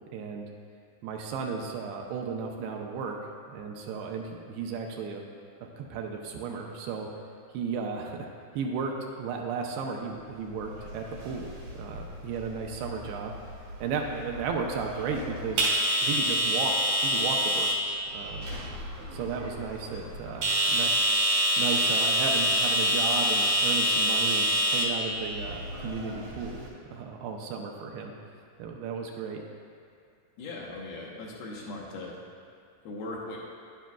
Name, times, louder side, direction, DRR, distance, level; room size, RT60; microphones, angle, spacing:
voice 1, 0.1-0.5 1.0-3.2 3.5-5.2 5.6-7.1 7.5-8.3 8.6-8.9 9.2-13.3 13.8-15.7 16.0-16.8 17.0-17.7 18.1-18.5 19.1-20.9 21.6-26.6 26.9-28.2 28.6-29.4, right 5 dB, 80° right, 1 dB, 2.6 m, -34 dB
sound 1, 10.6-26.7, equal, 65° right, 1.8 m, -28 dB
voice 2, 30.4-32.2 32.8-33.4, left 2 dB, 75° left, -4 dB, 2.6 m, -39 dB
10.5 x 9.9 x 2.3 m, 2.3 s
omnidirectional pair, 4.7 m